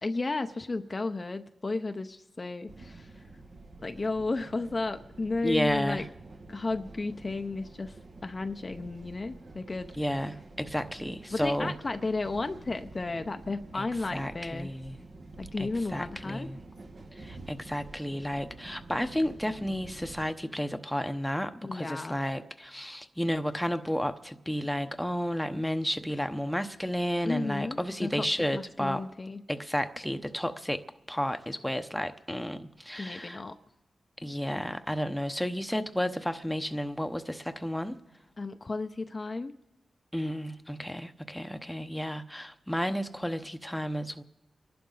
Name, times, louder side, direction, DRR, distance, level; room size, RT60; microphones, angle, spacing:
voice 1, 0.0-3.2 3.8-6.1 6.5-9.9 11.3-14.7 15.4-16.5 21.6-22.2 27.2-29.4 33.0-33.6 38.4-39.5, left 3 dB, 40° left, 7 dB, 0.7 m, -33 dB
sound 1, 2.7-20.3, right 2 dB, 65° right, 2.0 m, -48 dB
voice 2, 5.4-6.0 10.0-11.7 13.7-13.8 14.1-15.0 15.6-16.6 17.1-29.0 29.5-30.8 31.1-33.4 34.2-38.0 40.1-44.2, equal, 5° left, 7 dB, 0.9 m, -32 dB
29.5 x 11.5 x 4.0 m, 0.98 s
cardioid pair, 50°, 0 cm